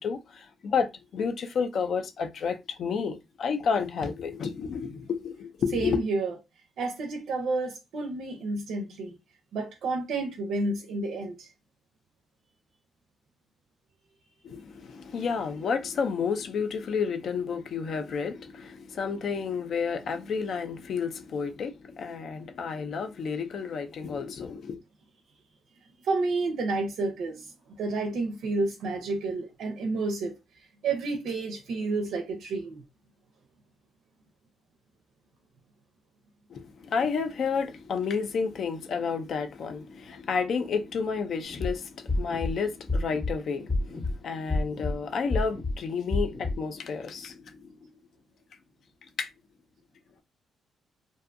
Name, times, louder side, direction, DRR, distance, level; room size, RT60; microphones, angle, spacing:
voice 1, 0.0-6.0 14.4-24.8 36.5-47.8 49.2-49.3, left 5 dB, 60° left, 0.4 m, -31 dB
voice 2, 5.7-6.3 6.8-9.1 9.5-11.5 26.0-27.5 27.8-30.3 30.8-32.8, right 3 dB, 75° right, 0.6 m, -30 dB
sound 1, 41.5-41.7 42.1-42.5 42.9-43.3 43.7-44.1 44.5-44.9 45.3-45.7 46.1-46.5, left 2 dB, 15° left, 0.6 m, -28 dB
2.6 x 2.3 x 2.5 m
cardioid pair, 125°, 0 cm